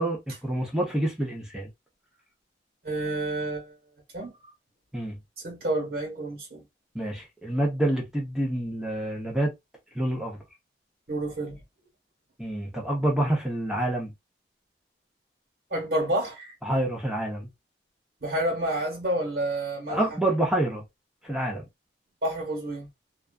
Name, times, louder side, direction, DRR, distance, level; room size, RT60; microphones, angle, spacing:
voice 1, 0.0-1.7 4.9-5.2 6.9-9.5 9.9-10.4 12.4-14.1 16.6-17.5 19.9-20.8 21.2-21.6, right 1 dB, 5° right, 0.6 m, -27 dB
voice 2, 2.8-3.7 4.1-4.5 5.4-6.6 11.1-11.6 15.7-16.5 18.2-20.0 22.2-22.9, right 1 dB, 60° right, 1.3 m, -29 dB
2.4 x 2.3 x 2.3 m
head